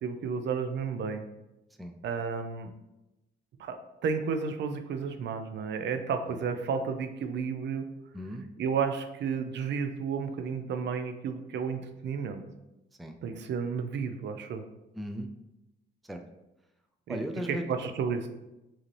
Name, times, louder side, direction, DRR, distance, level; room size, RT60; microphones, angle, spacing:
voice 1, 0.0-1.3 2.0-2.7 3.6-7.9 8.6-12.4 13.2-14.6 17.1-17.2 17.5-18.3, right 6 dB, 65° right, 7 dB, 0.5 m, -32 dB
voice 2, 8.1-8.5 13.0-13.2 15.0-15.3 16.0-16.2 17.1-17.6, equal, ahead, 4 dB, 0.4 m, -36 dB
4.9 x 2.8 x 3.2 m, 0.96 s
cardioid pair, 90°, 20 cm